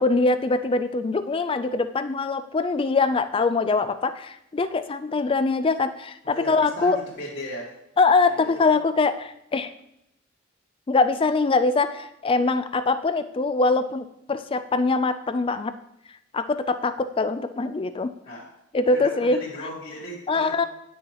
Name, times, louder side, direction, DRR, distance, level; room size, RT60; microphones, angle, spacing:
voice 1, 0.0-7.0 8.0-9.7 10.9-15.7 16.3-18.1 18.7-19.7 20.3-20.7, left 3 dB, 25° left, 11 dB, 0.4 m, -23 dB
voice 2, 6.2-7.7 8.3-8.7 18.3-18.4 18.9-20.7, equal, 55° left, -9 dB, 1.9 m, -37 dB
9.8 x 6.3 x 3.0 m, 0.82 s
head